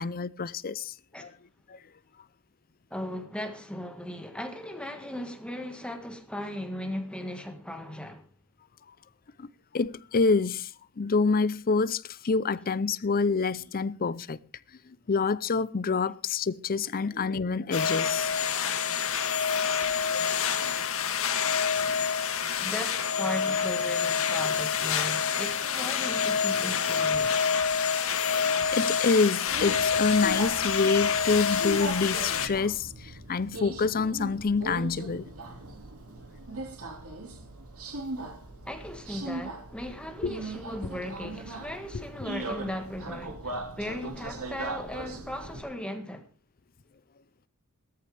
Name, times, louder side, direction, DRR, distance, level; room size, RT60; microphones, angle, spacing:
voice 1, 0.0-0.9 1.2-1.3 1.7-1.8 9.4-9.5 9.7-10.7 11.0-14.4 14.9-18.7 20.1-20.3 27.7-27.9 28.3-28.4 28.7-35.3 40.2-40.3 41.9-42.0, left 4 dB, 40° left, 0.6 m, -27 dB
voice 2, 2.9-8.2 22.6-27.4 38.6-46.2, left 1 dB, 5° left, 1.6 m, -37 dB
sound 1, 17.7-32.5, left 6 dB, 65° left, 1.6 m, -27 dB
Subway metro underground, 29.5-45.6, right 2 dB, 75° right, 2.2 m, -39 dB
17.0 x 13.5 x 3.4 m
head